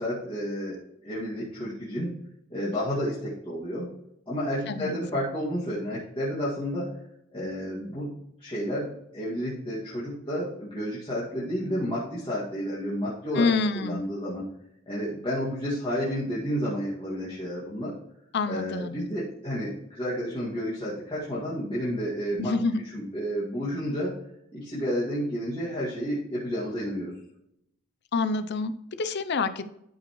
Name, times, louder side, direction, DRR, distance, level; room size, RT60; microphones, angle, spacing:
voice 1, 0.0-2.1 2.5-3.9 4.3-6.9 7.3-8.1 8.4-13.5 13.8-14.5 14.9-17.9 18.5-24.1 24.5-27.2, equal, 25° left, -9 dB, 2.1 m, -31 dB
voice 2, 13.3-14.0 18.3-19.1 22.4-22.8 28.1-29.6, left 4 dB, 50° left, 12 dB, 0.5 m, -27 dB
12.5 x 5.4 x 3.1 m, 0.80 s
head